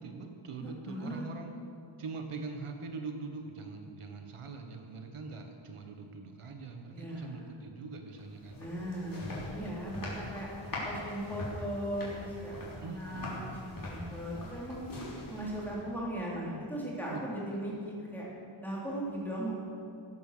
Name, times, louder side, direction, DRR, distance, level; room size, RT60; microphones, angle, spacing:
voice 1, 0.0-1.5 2.0-8.6 12.8-13.6 17.1-17.2, right 4 dB, 85° right, 4 dB, 1.5 m, -43 dB
voice 2, 0.6-1.3 6.9-7.5 8.6-10.5 10.8-14.8 15.3-18.3 18.6-19.5, equal, 5° left, -6 dB, 3.7 m, -38 dB
sound 1, 8.2-16.0, left 1 dB, 40° left, 3.7 m, -42 dB
17.0 x 8.8 x 6.8 m, 2.7 s
wide cardioid pair, 160°, 50 cm